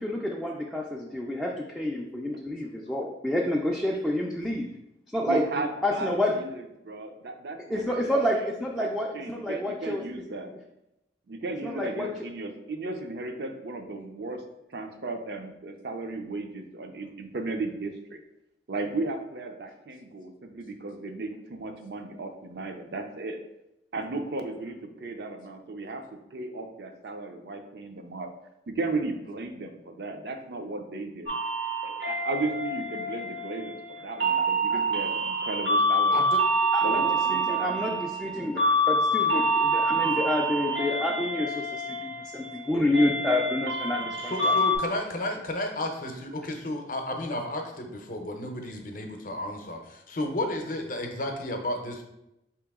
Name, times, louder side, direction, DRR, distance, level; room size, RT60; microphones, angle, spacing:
voice 1, 0.0-4.7 5.1-6.3 7.7-10.0 11.6-12.1 34.7-34.8 36.7-37.0 37.3-44.5, left 1 dB, 5° left, -3 dB, 0.3 m, -29 dB
voice 2, 5.2-8.4 8.8-8.9 9.1-10.5 11.3-14.4 14.7-18.2 18.7-23.4 23.9-28.3 28.7-31.4 31.8-36.2 36.8-38.1, right 3 dB, 60° right, 5 dB, 0.5 m, -35 dB
sound 1, 31.3-44.8, right 1 dB, 90° right, 1.1 m, -27 dB
voice 3, 44.2-52.0, left 1 dB, 50° left, 3 dB, 0.6 m, -32 dB
4.7 x 2.9 x 3.5 m, 0.89 s
head